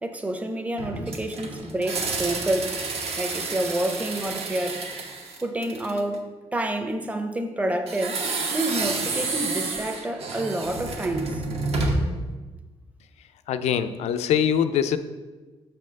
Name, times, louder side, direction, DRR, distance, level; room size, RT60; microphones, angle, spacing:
voice 1, 0.0-2.8 3.2-4.8 5.4-11.4, right 1 dB, 10° right, 0.6 m, -28 dB
sound 1, 0.8-6.1 7.9-12.2, right 3 dB, 65° right, 1.0 m, -30 dB
voice 2, 13.5-15.0, left 8 dB, 85° left, 0.4 m, -23 dB
6.3 x 4.3 x 6.2 m
cardioid pair, 135°, 11 cm